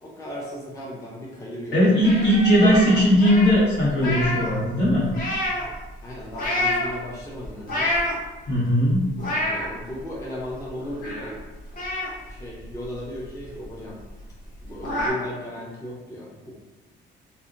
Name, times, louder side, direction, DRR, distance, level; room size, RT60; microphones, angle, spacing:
voice 1, 0.0-1.8 6.0-7.9 9.2-11.4 12.3-14.0 14.6-16.5, left 1 dB, 15° left, -4 dB, 0.5 m, -36 dB
voice 2, 1.7-5.1 8.5-9.1, equal, 65° left, -7 dB, 1.3 m, -18 dB
sound 1, 2.0-4.5 4.8-5.8 6.3-6.9 7.4-8.4 8.9-9.7 10.2-10.3 10.5-11.4 11.7-13.3 13.6-13.7 14.1-14.2 14.5-15.1, left 1 dB, 45° left, 0.9 m, -28 dB
2.6 x 2.1 x 2.5 m, 1.1 s
cardioid pair, 90°, 20 cm